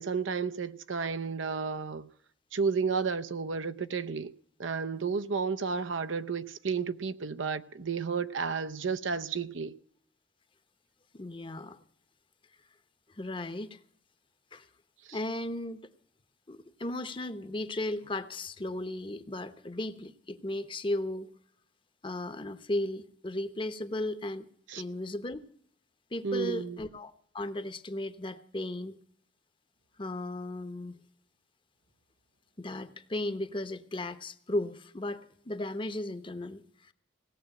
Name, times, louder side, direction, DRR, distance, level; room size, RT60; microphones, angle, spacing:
voice 1, 0.0-2.1 2.5-4.3 4.6-9.7 15.1-15.2 24.7-24.8 26.2-26.8, right 5 dB, 80° right, 0.7 m, -32 dB
voice 2, 11.1-11.8 13.2-13.8 14.5-14.7 15.1-15.9 16.5-21.3 22.0-24.5 24.8-25.5 26.1-29.0 30.0-31.0 32.6-36.9, left 1 dB, 25° left, 0.9 m, -36 dB
18.0 x 7.5 x 8.8 m
head